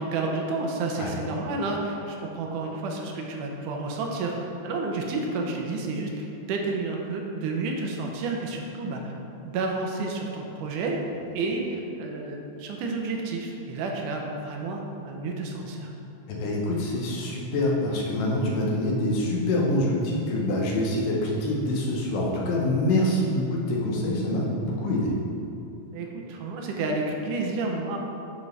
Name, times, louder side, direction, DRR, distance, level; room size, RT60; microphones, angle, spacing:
voice 1, 0.0-9.1 9.4-11.0 11.3-15.9 25.9-28.0, right 3 dB, 80° right, 0 dB, 2.2 m, -30 dB
voice 2, 16.3-25.2, left 1 dB, 80° left, -2 dB, 2.6 m, -25 dB
9.4 x 4.7 x 3.3 m, 2.7 s
omnidirectional pair, 3.7 m